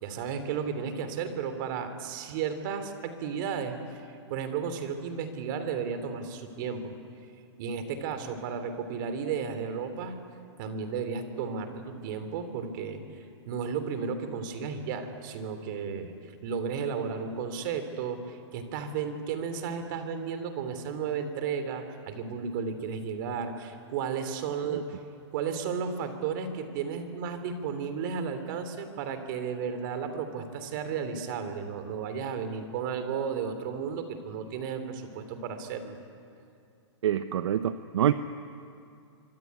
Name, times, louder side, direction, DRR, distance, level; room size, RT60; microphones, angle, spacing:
voice 1, 0.0-4.0 4.3-6.9 7.6-10.2 10.6-16.1 16.4-25.0 25.3-36.0, right 6 dB, 45° right, 9 dB, 3.3 m, -33 dB
voice 2, 37.0-38.1, right 10 dB, 70° right, 11 dB, 0.9 m, -26 dB
25.0 x 24.5 x 9.5 m, 2.5 s
hypercardioid pair, 155°, 15 cm